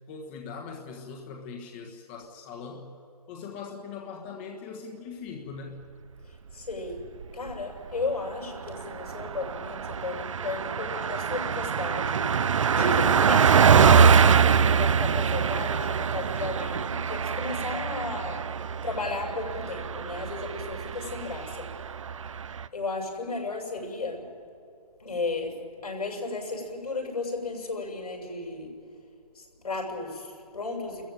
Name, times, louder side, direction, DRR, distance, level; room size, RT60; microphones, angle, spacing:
voice 1, 0.1-2.9 3.3-5.8, left 5 dB, 20° left, 1 dB, 1.4 m, -40 dB
voice 2, 6.2-7.0 7.3-12.5 12.8-21.8 22.7-24.3 25.0-25.6 25.8-28.7 29.3-31.1, left 3 dB, 80° left, 1 dB, 7.2 m, -34 dB
Car passing by, 7.0-7.6 8.0-8.1 8.4-22.7, right 6 dB, 55° right, 0.7 m, -24 dB
30.0 x 14.5 x 9.2 m, 2.7 s
hypercardioid pair, 165°, 20 cm